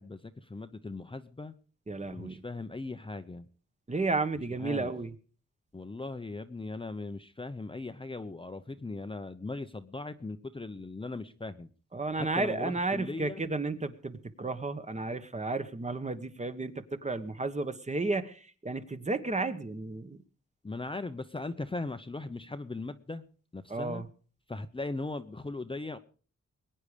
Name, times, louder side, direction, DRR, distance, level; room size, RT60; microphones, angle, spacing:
voice 1, 0.0-1.5 2.1-3.4 4.6-4.9 5.7-11.7 12.2-13.4 20.6-23.2 23.5-24.0 24.5-26.0, left 3 dB, 15° left, 9 dB, 0.8 m, -39 dB
voice 2, 1.9-2.4 3.9-5.1 11.9-16.7 17.0-20.2 23.7-24.1, right 3 dB, 25° right, 10 dB, 1.2 m, -32 dB
21.5 x 9.8 x 5.1 m, 0.40 s
wide cardioid pair, 110°, 30 cm